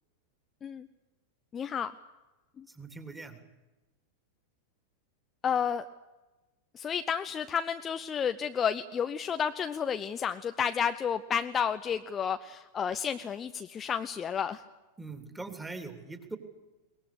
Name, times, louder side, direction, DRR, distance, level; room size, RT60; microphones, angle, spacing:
voice 1, 1.5-1.9 2.6-2.7 5.4-5.8 6.7-14.6, left 7 dB, 25° left, 9 dB, 0.7 m, -31 dB
voice 2, 2.7-3.4 15.0-16.4, right 3 dB, 10° right, 7 dB, 3.0 m, -41 dB
22.5 x 19.5 x 8.4 m, 1.1 s
figure-of-eight pair, 90°, 0 cm